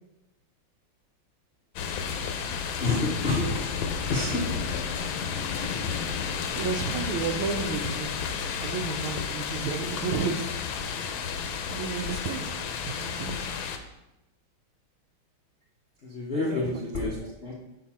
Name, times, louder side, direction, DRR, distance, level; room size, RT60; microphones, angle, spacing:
sound 1, 1.8-13.8, left 6 dB, 80° left, 1.4 m, -32 dB
voice 1, 2.8-4.4 16.0-17.5, left 3 dB, 60° left, -4 dB, 0.6 m, -29 dB
voice 2, 6.5-8.1 8.6-10.5 11.6-12.5 12.8-13.4 16.3-17.2, right 5 dB, 85° right, 6 dB, 1.5 m, -32 dB
6.5 x 4.4 x 4.2 m, 0.93 s
omnidirectional pair, 2.2 m